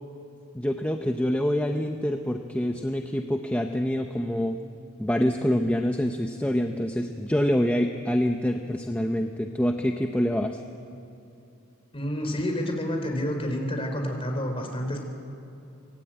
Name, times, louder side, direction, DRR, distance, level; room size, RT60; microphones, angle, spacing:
voice 1, 0.5-4.6 5.0-10.6, equal, 5° left, 4 dB, 0.8 m, -26 dB
voice 2, 11.9-15.0, equal, 30° left, 3 dB, 4.0 m, -29 dB
25.0 x 19.0 x 9.0 m, 2.7 s
head